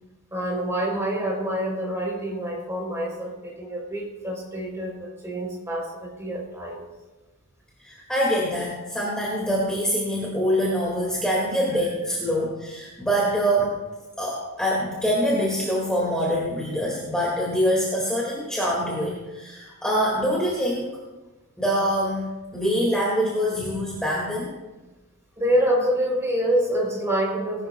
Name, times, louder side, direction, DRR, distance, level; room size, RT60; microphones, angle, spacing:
voice 1, 0.3-6.8 25.4-27.7, right 1 dB, 15° right, -2 dB, 3.4 m, -26 dB
voice 2, 7.8-13.7 14.2-20.9 21.6-24.5, equal, 5° left, -5 dB, 2.0 m, -24 dB
19.5 x 11.5 x 2.3 m, 1.2 s
head